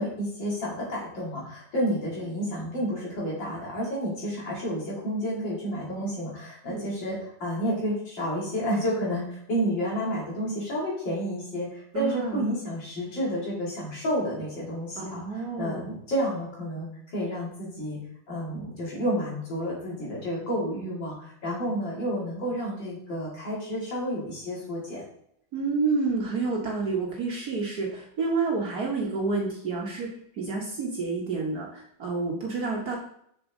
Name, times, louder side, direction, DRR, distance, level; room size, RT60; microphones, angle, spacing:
voice 1, 0.0-16.9 17.1-18.0 18.3-25.0, equal, 65° left, -5 dB, 3.4 m, -30 dB
voice 2, 11.9-12.4 15.0-15.9 25.5-30.1 30.4-31.7 32.0-33.0, right 4 dB, 55° right, -1 dB, 1.5 m, -29 dB
6.9 x 6.1 x 3.7 m, 0.70 s
omnidirectional pair, 2.2 m